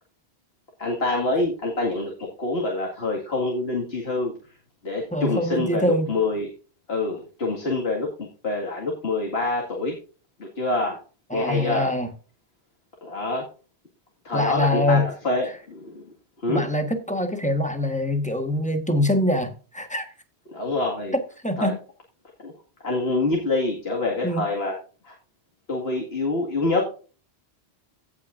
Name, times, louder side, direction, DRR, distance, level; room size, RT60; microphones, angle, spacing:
voice 1, 0.8-4.3 4.8-6.5 6.9-10.0 10.4-11.0 11.3-11.9 13.0-13.4 14.2-16.1 16.4-16.6 20.5-21.1 21.6-21.7 22.4-22.5 22.8-24.8 25.0-25.2 25.7-26.8, left 2 dB, 65° left, 2.3 m, -26 dB
voice 2, 5.1-6.1 11.3-12.1 14.3-15.1 16.5-20.0 21.4-21.8 24.2-24.5, left 1 dB, 5° left, 1.2 m, -24 dB
17.0 x 6.0 x 2.5 m
omnidirectional pair, 1.1 m